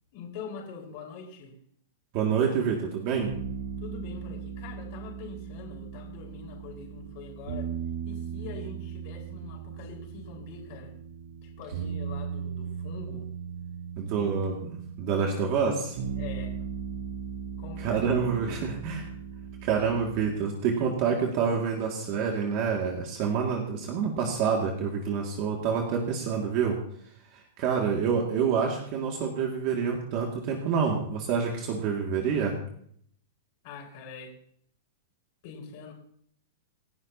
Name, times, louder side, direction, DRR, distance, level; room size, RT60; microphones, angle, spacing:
voice 1, 0.1-1.5 3.8-7.7 8.0-10.9 11.4-13.3 14.1-14.5 16.1-16.6 17.6-18.0 18.3-18.6 33.6-34.4 35.4-35.9, left 5 dB, 40° left, -1 dB, 5.0 m, -43 dB
voice 2, 2.1-3.3 14.0-16.0 17.8-19.1 19.6-26.8 27.3-32.6, right 6 dB, 35° right, 0 dB, 2.3 m, -27 dB
sound 1, 3.2-20.2, right 7 dB, 65° right, 3.4 m, -38 dB
28.5 x 11.0 x 2.9 m, 0.64 s
supercardioid pair, 170°, 0 cm